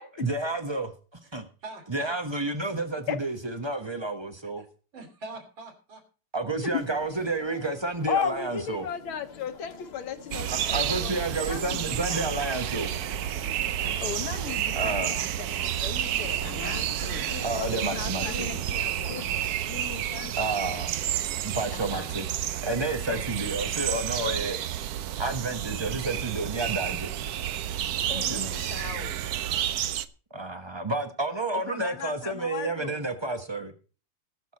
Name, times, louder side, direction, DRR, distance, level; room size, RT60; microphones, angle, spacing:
voice 1, 0.2-0.9 1.3-1.4 1.9-4.6 6.3-8.9 10.5-12.9 14.7-15.1 17.4-18.5 20.4-21.0 21.4-22.3 22.6-24.6 25.2-27.1 28.1-28.5 30.3-33.7, right 2 dB, 30° right, 7 dB, 0.4 m, -30 dB
voice 2, 1.6-2.1 4.6-4.7 4.9-6.0 10.2-10.8, right 3 dB, 60° right, 3 dB, 3.6 m, -44 dB
sound 1, 6.7-19.2, left 5 dB, 35° left, 1.1 m, -45 dB
voice 3, 8.1-10.8 14.3-14.4, left 7 dB, 70° left, 9 dB, 1.7 m, -31 dB
sound 2, 10.3-30.1, right 11 dB, 85° right, 0.8 m, -30 dB
voice 4, 10.9-12.5 14.0-16.9 17.6-20.8 21.7-22.1 23.1-23.2 28.1-29.2 31.7-33.0, left 9 dB, 90° left, 8 dB, 2.2 m, -40 dB
19.5 x 6.6 x 4.2 m, 0.37 s
omnidirectional pair, 2.4 m